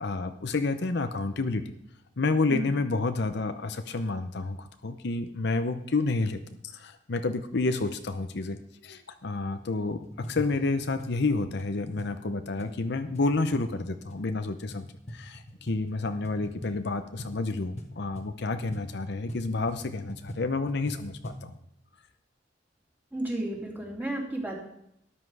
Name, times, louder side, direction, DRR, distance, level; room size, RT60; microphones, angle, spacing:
voice 1, 0.0-1.6 2.2-6.4 6.7-8.6 8.8-14.8 15.1-21.5, left 3 dB, 65° left, 8 dB, 0.7 m, -29 dB
sound 1, 9.8-21.5, equal, 35° left, 1.4 m, -44 dB
voice 2, 23.1-24.6, right 1 dB, 10° right, -2 dB, 2.9 m, -32 dB
13.0 x 9.9 x 4.8 m, 0.76 s
head